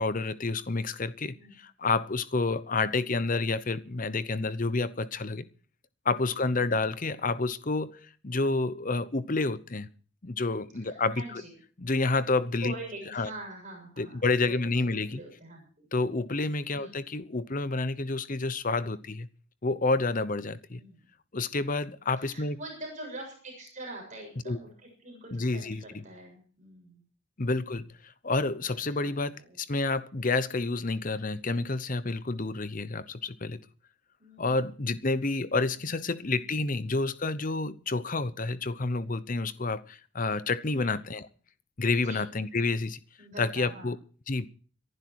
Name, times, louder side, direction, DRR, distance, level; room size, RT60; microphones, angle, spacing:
voice 1, 0.0-5.5 6.0-9.9 10.2-11.4 11.8-12.7 13.1-13.3 14.0-15.2 15.9-19.3 19.6-20.8 21.3-22.6 24.5-24.6 25.3-25.8 27.4-33.6 34.4-41.3 41.8-43.0 43.4-44.0 44.3-44.5, left 3 dB, 40° left, 0.8 m, -29 dB
voice 2, 6.3-6.8 10.7-11.5 12.6-14.6 14.8-15.9 16.7-17.0 20.8-21.0 22.2-27.0 29.0-29.6 34.2-34.6 35.7-36.7 40.7-41.0 41.9-42.2 43.2-43.9, right 1 dB, 35° right, 7.1 m, -45 dB
23.0 x 11.5 x 4.7 m
head